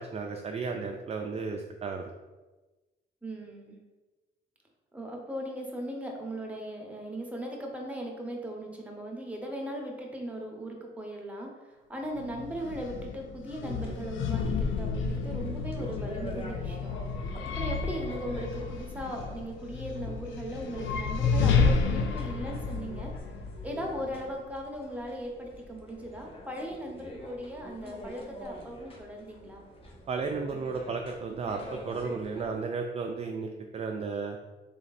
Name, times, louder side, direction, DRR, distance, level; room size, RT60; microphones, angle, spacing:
voice 1, 0.0-2.1 30.1-34.4, right 4 dB, 30° right, 3 dB, 0.4 m, -34 dB
voice 2, 3.2-3.8 4.9-16.9 17.3-23.1 23.6-29.6, equal, 5° right, 0 dB, 0.9 m, -38 dB
sound 1, 12.2-24.3, left 5 dB, 75° left, 0.5 m, -31 dB
sound 2, 13.6-32.6, left 1 dB, 30° left, 1.1 m, -46 dB
3.5 x 3.1 x 4.1 m, 1.2 s
cardioid pair, 90°, 20 cm